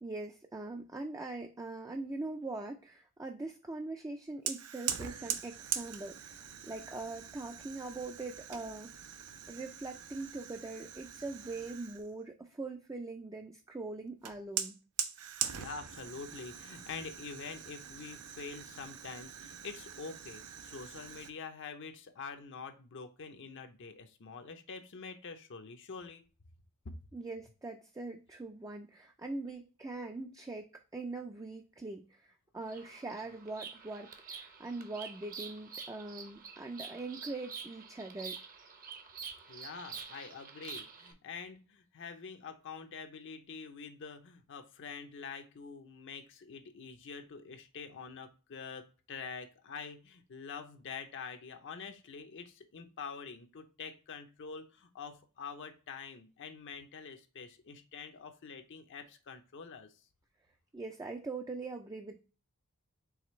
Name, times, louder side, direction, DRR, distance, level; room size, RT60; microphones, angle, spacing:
voice 1, 0.0-9.1 9.5-14.8 27.1-38.4 60.7-62.2, right 3 dB, 15° right, 3 dB, 0.3 m, -42 dB
Fire, 4.5-12.1 14.2-21.3, right 9 dB, 90° right, 0.6 m, -42 dB
voice 2, 15.5-26.2 39.5-59.9, left 5 dB, 55° left, 7 dB, 0.6 m, -46 dB
Bird vocalization bird call bird song, 32.6-41.1, right 6 dB, 40° right, 0.7 m, -47 dB
4.9 x 3.3 x 3.0 m, 0.35 s
head